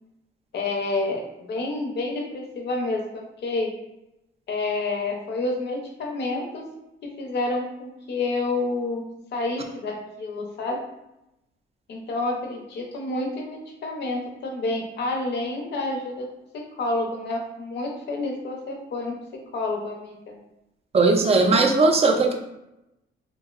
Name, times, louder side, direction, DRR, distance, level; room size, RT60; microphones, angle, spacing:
voice 1, 0.5-3.7 4.5-6.6 7.2-9.0 9.3-10.8 11.9-16.3 16.5-19.2 19.5-20.1, left 2 dB, 60° left, 1 dB, 0.6 m, -29 dB
voice 2, 20.9-22.4, right 3 dB, 30° right, 4 dB, 0.4 m, -18 dB
2.7 x 2.0 x 2.3 m, 0.89 s
cardioid pair, 90°, 20 cm